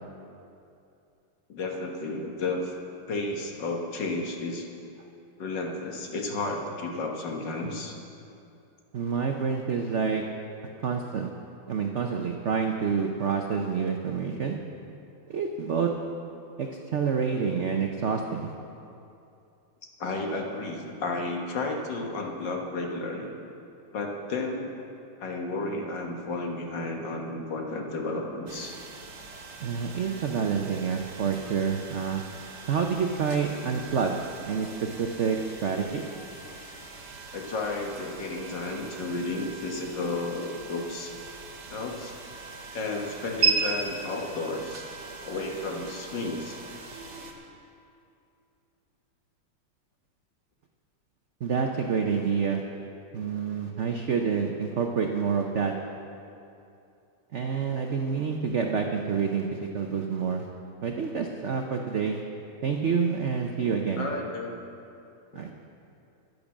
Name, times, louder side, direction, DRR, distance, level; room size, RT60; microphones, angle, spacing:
voice 1, 1.5-2.7 3.1-4.7 5.4-8.0 20.0-23.3 23.9-24.7 25.2-28.8 37.3-41.1 41.7-42.1 42.7-44.9 45.2-46.6 64.0-64.6 65.3-65.5, left 2 dB, 60° left, 1 dB, 2.0 m, -32 dB
voice 2, 8.9-10.2 10.8-11.3 11.7-14.6 15.3-15.9 16.6-18.5 29.6-32.2 32.7-34.2 34.5-36.1 51.4-52.6 53.1-55.7 57.3-60.5 60.8-62.2 62.6-64.1 65.3-65.5, right 6 dB, 85° right, 3 dB, 0.6 m, -28 dB
sound 1, 28.5-47.3, right 6 dB, 50° right, 1.8 m, -37 dB
11.0 x 10.5 x 7.3 m, 2.7 s
omnidirectional pair, 2.3 m